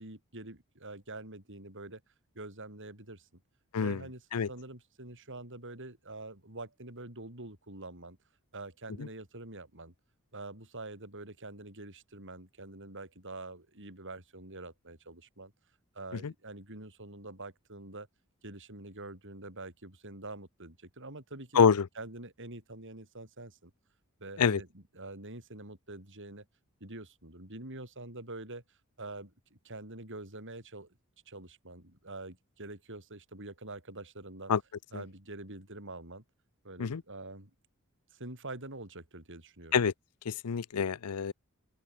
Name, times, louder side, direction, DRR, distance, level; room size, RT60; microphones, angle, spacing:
voice 1, 0.0-2.0 2.3-3.4 3.8-8.2 8.5-9.9 10.3-15.5 15.9-18.1 18.4-21.6 21.9-23.7 24.2-26.4 26.8-30.9 31.3-34.5 34.9-36.2 36.6-37.5 38.1-39.8, right 2 dB, 55° right, 6.6 m, -45 dB
voice 2, 21.5-21.9 24.4-24.6 34.5-34.6 36.8-37.0 39.7-39.9 40.3-41.3, left 6 dB, 80° left, 0.6 m, -26 dB
open air
head